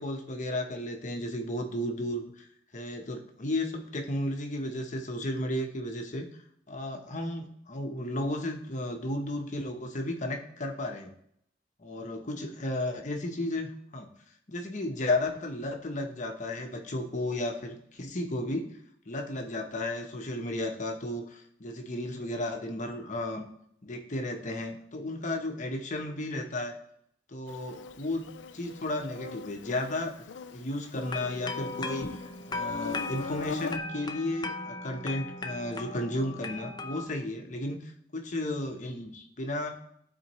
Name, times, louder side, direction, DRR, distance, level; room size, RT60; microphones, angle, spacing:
voice 1, 0.0-2.5 2.7-6.3 6.7-11.1 11.8-14.1 14.5-18.7 19.1-23.5 23.8-26.8 27.3-28.2 28.5-30.1 30.5-39.8, left 1 dB, 45° left, 4 dB, 1.0 m, -33 dB
Insect, 27.5-33.8, left 5 dB, 80° left, 0.4 m, -41 dB
sound 1, 31.0-37.1, left 3 dB, 25° left, 0.6 m, -38 dB
13.0 x 4.4 x 3.1 m, 0.69 s
head